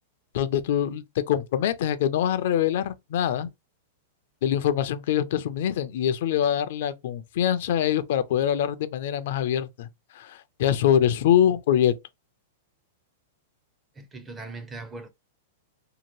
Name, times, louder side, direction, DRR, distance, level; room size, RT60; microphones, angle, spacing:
voice 1, 0.3-3.5 4.4-9.9 10.2-11.9, left 10 dB, 60° left, 0.4 m, -24 dB
voice 2, 14.0-15.1, right 3 dB, 10° right, 0.4 m, -39 dB
2.8 x 2.5 x 2.8 m
supercardioid pair, 155°, 0 cm